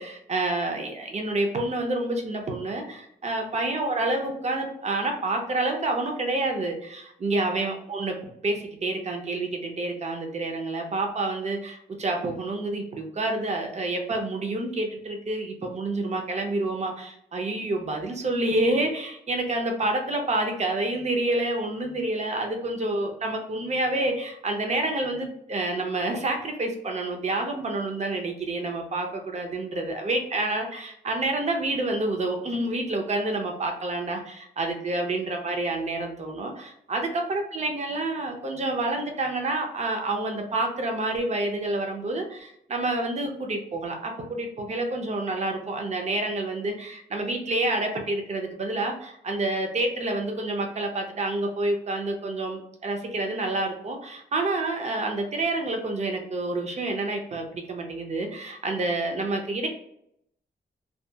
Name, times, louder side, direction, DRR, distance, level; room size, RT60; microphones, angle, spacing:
voice 1, 0.0-8.1 8.4-59.7, right 2 dB, 40° right, 3 dB, 0.5 m, -28 dB
2.7 x 2.3 x 2.3 m, 0.74 s
wide cardioid pair, 115°, 18 cm